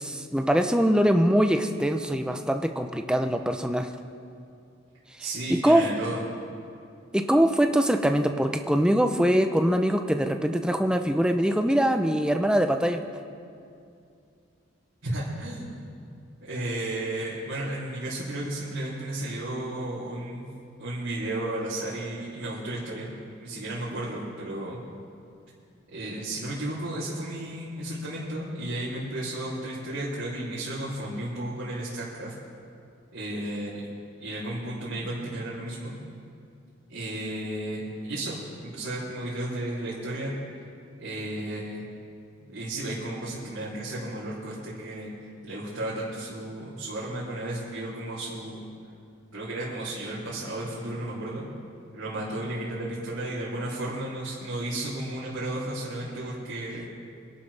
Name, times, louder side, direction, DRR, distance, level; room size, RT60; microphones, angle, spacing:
voice 1, 0.0-3.9 5.2-5.8 7.1-13.0 56.0-56.1, equal, 5° right, 6 dB, 0.6 m, -23 dB
voice 2, 5.2-6.2 15.0-15.7 16.5-20.4 20.8-23.1 23.4-24.8 25.9-32.3 33.1-33.9 34.2-35.9 36.9-40.3 41.0-41.8 42.4-45.1 45.4-48.6 49.3-51.4 51.9-56.9, right 1 dB, 90° right, -9 dB, 3.1 m, -33 dB
25.0 x 11.5 x 3.3 m, 2.5 s
head